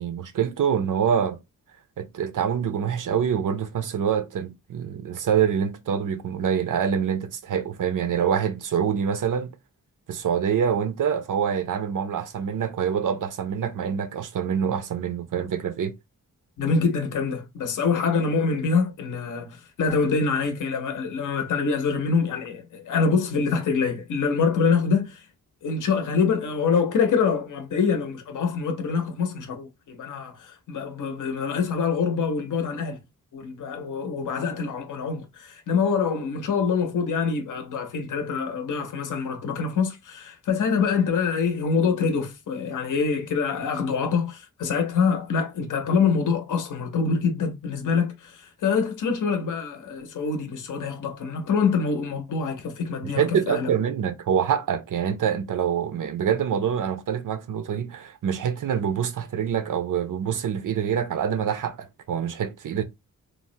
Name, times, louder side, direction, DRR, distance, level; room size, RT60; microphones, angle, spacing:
voice 1, 0.0-1.4 2.0-9.5 10.1-16.0 53.0-62.8, right 8 dB, 65° right, 0.6 m, -25 dB
voice 2, 16.6-25.3 25.6-33.0 33.3-53.7, left 5 dB, 65° left, 0.7 m, -25 dB
3.3 x 2.1 x 2.6 m
wide cardioid pair, 120°, 34 cm